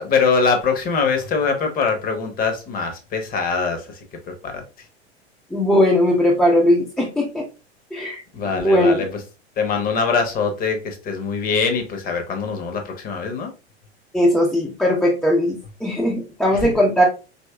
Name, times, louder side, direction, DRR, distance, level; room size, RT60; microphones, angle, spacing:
voice 1, 0.0-3.9 4.3-4.6 8.3-9.1 9.6-13.5 16.6-16.7, left 5 dB, 25° left, 0.8 m, -22 dB
voice 2, 5.5-7.5 7.9-8.2 8.5-9.1 14.1-17.0, left 1 dB, 5° left, 0.5 m, -18 dB
4.2 x 2.9 x 2.2 m
figure-of-eight pair, 95°, 33 cm